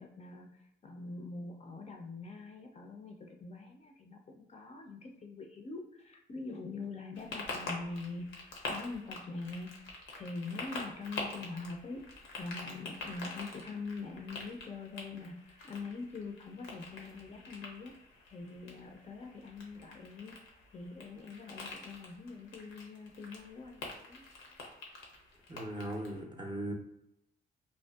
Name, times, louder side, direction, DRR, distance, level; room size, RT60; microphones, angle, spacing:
voice 1, 0.0-8.3 8.7-9.7 10.1-12.0 12.4-17.9 18.3-20.3 20.7-24.2, left 3 dB, 35° left, 2 dB, 0.4 m, -44 dB
sound 1, 7.1-26.2, left 2 dB, 90° left, 0.6 m, -46 dB
voice 2, 25.5-26.7, right 1 dB, 20° right, 2 dB, 0.5 m, -38 dB
2.5 x 2.2 x 2.2 m, 0.79 s
cardioid pair, 90°, 20 cm